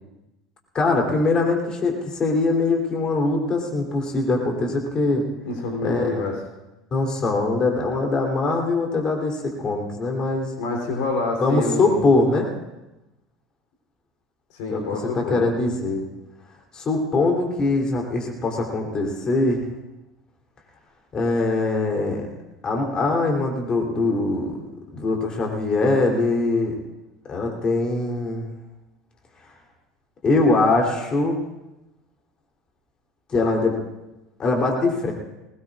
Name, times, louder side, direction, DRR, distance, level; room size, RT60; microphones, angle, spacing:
voice 1, 0.7-5.2 5.8-6.2 6.9-10.5 11.4-12.5 14.7-14.8 15.1-16.0 16.7-19.6 21.1-22.3 22.6-24.6 24.9-26.7 27.3-28.5 30.2-31.4 33.3-33.7 34.4-35.1, left 3 dB, 35° left, 1 dB, 3.3 m, -22 dB
voice 2, 5.4-6.3 10.6-12.0 14.6-15.4, left 3 dB, 65° left, 1 dB, 3.4 m, -27 dB
21.5 x 19.5 x 2.5 m, 0.99 s
hypercardioid pair, 70°, 2 cm